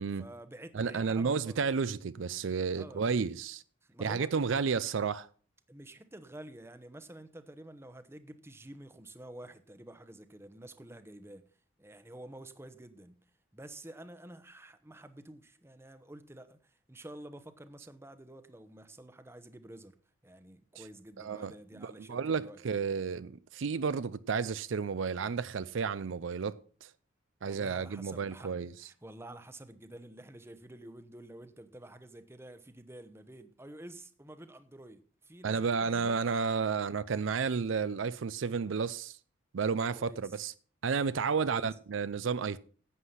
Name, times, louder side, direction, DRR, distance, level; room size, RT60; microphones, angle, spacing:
voice 1, 0.0-1.7 2.7-3.1 3.8-4.6 5.7-11.4 11.8-13.2 13.5-20.0 20.2-22.6 27.4-28.5 28.8-36.2 39.7-40.5 41.4-41.7, right 1 dB, 10° right, 0.8 m, -50 dB
voice 2, 0.7-3.6 4.0-5.3 21.2-26.9 27.4-28.7 35.4-39.2 39.5-40.5 40.8-42.6, right 5 dB, 70° right, 0.5 m, -32 dB
11.0 x 8.2 x 5.7 m
head